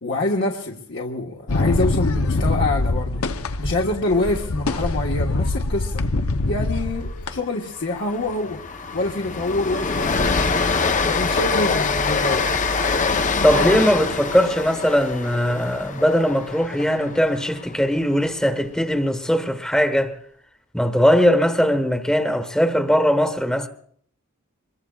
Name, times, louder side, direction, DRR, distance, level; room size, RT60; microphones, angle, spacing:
voice 1, 0.0-3.2 3.6-6.0 6.5-8.6 8.9-10.3 11.0-12.5, left 2 dB, 60° left, 1.5 m, -25 dB
sound 1, 1.5-7.4, left 2 dB, 90° left, 0.9 m, -24 dB
Train, 6.6-6.9 7.2-7.3 7.7-17.8, left 4 dB, 35° left, 0.8 m, -24 dB
voice 2, 13.4-20.1 20.7-23.7, equal, 5° left, 1.2 m, -20 dB
24.5 x 22.0 x 2.4 m
head